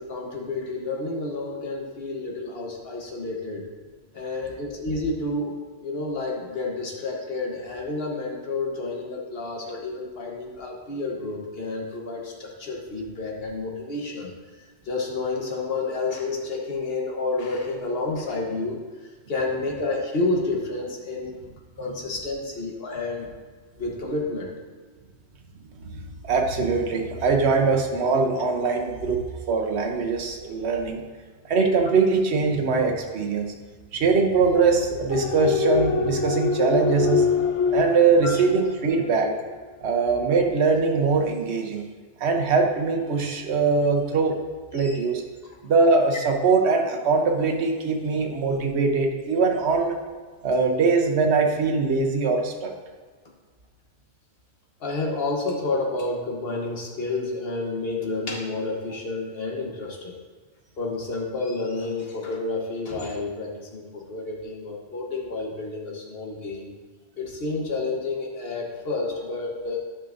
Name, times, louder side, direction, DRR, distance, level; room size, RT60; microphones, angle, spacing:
voice 1, 0.0-3.7 4.1-14.3 14.8-18.8 19.3-21.4 21.8-23.3 23.8-24.5 38.2-38.4 44.7-45.0 45.4-45.5 54.8-60.2 60.8-66.7 67.2-69.8, left 3 dB, 60° left, 0 dB, 1.3 m, -30 dB
voice 2, 26.2-29.2 29.5-31.0 31.4-33.5 33.9-37.3 37.7-39.3 39.8-41.8 42.2-44.4 44.7-45.2 45.6-50.0 50.4-52.7, right 4 dB, 70° right, 2 dB, 1.1 m, -22 dB
sound 1, 35.1-39.6 40.0-40.1, left 5 dB, 90° left, 1.0 m, -25 dB
10.0 x 5.7 x 2.6 m, 1.4 s
omnidirectional pair, 1.2 m